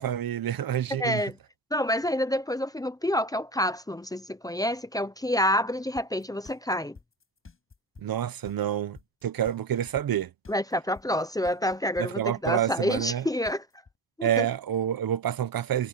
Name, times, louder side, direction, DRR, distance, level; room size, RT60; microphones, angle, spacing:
voice 1, 0.0-1.2 8.0-10.3 12.0-13.2 14.2-15.9, right 10 dB, 65° right, 1.0 m, -28 dB
voice 2, 1.0-1.4 1.7-7.0 10.5-13.6 14.2-14.5, left 1 dB, 10° left, 0.7 m, -28 dB
sound 1, 6.0-13.9, left 4 dB, 35° left, 6.0 m, -49 dB
wide cardioid pair, 130°, 37 cm